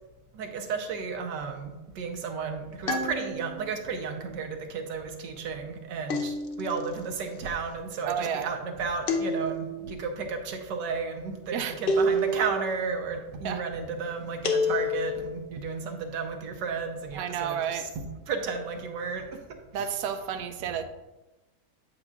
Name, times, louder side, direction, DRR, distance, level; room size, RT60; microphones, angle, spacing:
voice 1, 0.3-19.4 19.7-19.9, right 5 dB, 90° right, 5 dB, 1.5 m, -33 dB
sound 1, 2.9-3.7 6.1-6.9 9.1-9.9 11.9-12.7 14.4-15.3, left 1 dB, 85° left, 0.4 m, -28 dB
voice 2, 8.0-8.5 11.5-11.7 13.4-13.6 17.1-17.9 19.7-20.8, right 8 dB, 70° right, 8 dB, 1.0 m, -31 dB
8.8 x 8.0 x 2.4 m, 1.1 s
omnidirectional pair, 1.8 m